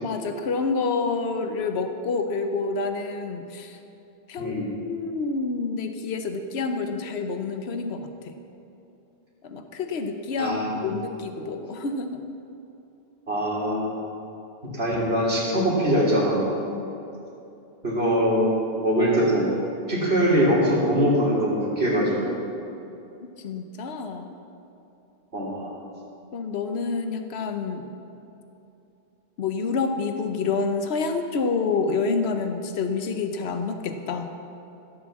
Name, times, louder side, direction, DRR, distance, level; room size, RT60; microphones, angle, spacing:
voice 1, 0.0-3.8 4.3-4.5 4.8-8.3 9.4-10.6 10.8-12.2 16.7-17.0 23.4-24.3 26.3-27.9 29.4-34.3, left 4 dB, 75° left, 7 dB, 1.1 m, -28 dB
voice 2, 4.4-4.7 10.4-10.8 13.3-13.9 14.6-16.4 17.8-19.5 19.9-22.3 25.3-25.7, equal, 70° right, -5 dB, 3.3 m, -22 dB
14.5 x 8.1 x 7.2 m, 2.8 s
omnidirectional pair, 1.1 m